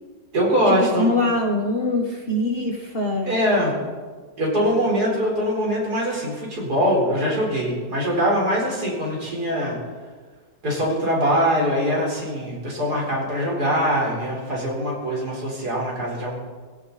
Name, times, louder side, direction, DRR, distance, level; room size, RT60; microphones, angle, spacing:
voice 1, 0.3-1.2 3.2-3.8 4.4-9.8 10.6-16.4, equal, 60° right, -3 dB, 4.8 m, -22 dB
voice 2, 0.9-3.3, left 1 dB, 35° left, 1 dB, 1.5 m, -23 dB
18.5 x 16.5 x 4.2 m, 1.4 s
omnidirectional pair, 1.9 m